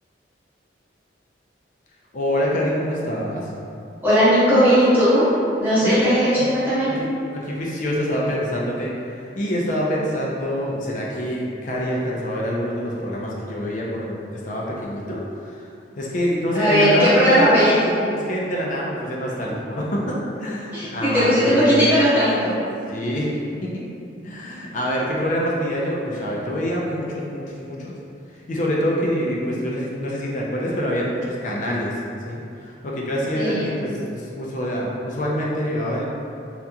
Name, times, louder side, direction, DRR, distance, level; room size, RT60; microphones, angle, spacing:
voice 1, 2.1-3.5 5.8-6.5 7.0-7.1 7.3-15.6 16.0-17.6 18.1-21.9 22.9-23.8 24.2-27.9 28.5-32.0 32.3-36.1, equal, 45° left, -3 dB, 0.4 m, -26 dB
voice 2, 4.0-5.3 5.6-6.9 16.5-17.9 20.7-22.5 33.3-33.7, equal, 10° right, -13 dB, 1.0 m, -17 dB
2.8 x 2.4 x 2.2 m, 2.5 s
head